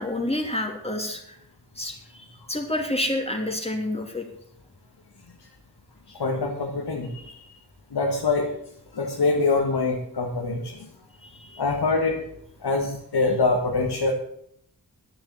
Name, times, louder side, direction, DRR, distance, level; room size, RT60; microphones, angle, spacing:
voice 1, 0.0-1.4 1.7-4.3 11.2-11.6, left 1 dB, 15° left, 3 dB, 2.9 m, -29 dB
voice 2, 6.2-7.4 7.9-8.5 8.9-10.9 11.6-12.2 12.6-14.1, left 3 dB, 85° left, -1 dB, 1.8 m, -24 dB
10.5 x 7.4 x 8.5 m, 0.71 s
cardioid pair, 45°, 39 cm